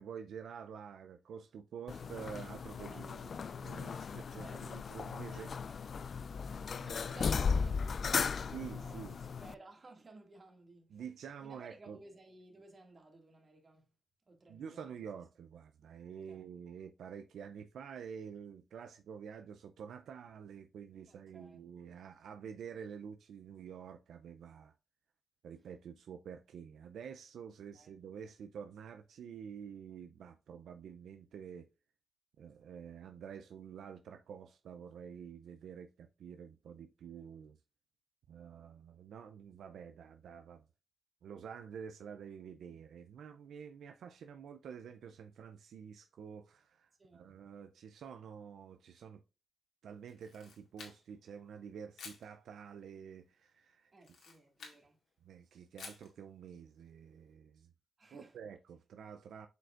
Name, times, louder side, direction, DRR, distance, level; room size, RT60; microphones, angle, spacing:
voice 1, 0.0-3.2 3.6-5.6 8.5-9.2 10.9-12.0 14.5-24.7 25.4-31.7 32.4-37.6 38.3-40.6 41.2-49.2 49.8-53.9 55.2-57.7 58.1-59.5, right 7 dB, 85° right, 0.4 m, -48 dB
sound 1, 1.9-9.5, left 5 dB, 60° left, 0.3 m, -36 dB
voice 2, 2.9-3.5 4.4-4.9 5.3-5.8 6.7-11.0 11.4-13.9 14.3-15.1 16.3-16.5 21.1-21.6 27.7-27.9 42.7-42.8 47.0-47.4 53.9-55.0 58.0-58.4, right 2 dB, 45° right, 2.0 m, -57 dB
Camera, 50.1-51.3 52.0-52.3 54.0-54.8 55.8-56.1, left 5 dB, 85° left, 2.0 m, -51 dB
7.7 x 5.1 x 2.4 m
cardioid pair, 75°, 0 cm